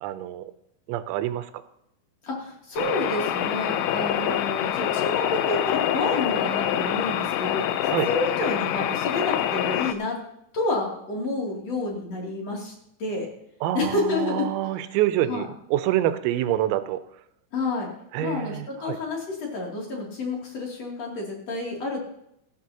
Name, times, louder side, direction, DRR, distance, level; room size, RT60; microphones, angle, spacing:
voice 1, 0.0-0.5 0.9-1.5 7.9-8.1 13.6-17.0 18.1-19.0, right 13 dB, 90° right, 12 dB, 3.5 m, -26 dB
voice 2, 2.2-7.7 8.0-10.2 10.5-12.7 13.0-13.3 13.7-14.5 15.3-15.4 17.5-17.9 18.2-22.1, left 2 dB, 40° left, -2 dB, 3.2 m, -29 dB
sound 1, 2.8-9.9, left 11 dB, 85° left, 3.5 m, -26 dB
17.5 x 13.0 x 2.9 m, 0.76 s
omnidirectional pair, 5.9 m